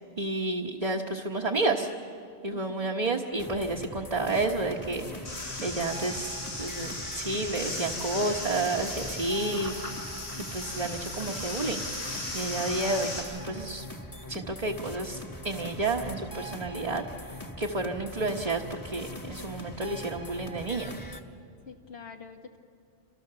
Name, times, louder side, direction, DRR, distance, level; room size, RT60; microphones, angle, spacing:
voice 1, 0.2-1.9 2.4-5.0 5.6-9.7 10.4-11.8 12.3-13.9 14.3-17.0 17.6-20.9, right 2 dB, 35° right, -1 dB, 1.3 m, -30 dB
voice 2, 2.5-2.9 21.7-22.6, left 6 dB, 60° left, 2 dB, 1.6 m, -45 dB
sound 1, 3.4-21.2, left 1 dB, 15° left, 1.4 m, -41 dB
sound 2, 5.2-13.2, left 1 dB, 80° left, 8.3 m, -37 dB
28.5 x 26.0 x 6.9 m, 2.4 s
omnidirectional pair, 1.2 m